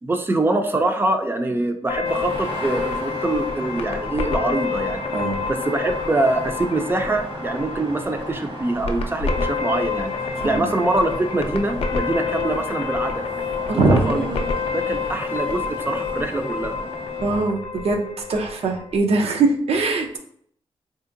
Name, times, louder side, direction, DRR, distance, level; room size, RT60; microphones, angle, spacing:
voice 1, 0.0-5.0 5.5-10.1 10.4-13.3 13.7-14.3 14.7-16.8, right 2 dB, 20° right, 6 dB, 0.4 m, -24 dB
sound 1, 1.9-19.0, left 5 dB, 70° left, 0.4 m, -28 dB
sound 2, 2.0-17.4, right 1 dB, 65° right, 1.0 m, -36 dB
voice 2, 13.7-14.4 17.2-20.2, right 3 dB, 80° right, 2 dB, 0.5 m, -22 dB
3.2 x 2.7 x 2.5 m, 0.65 s
wide cardioid pair, 105°, 10 cm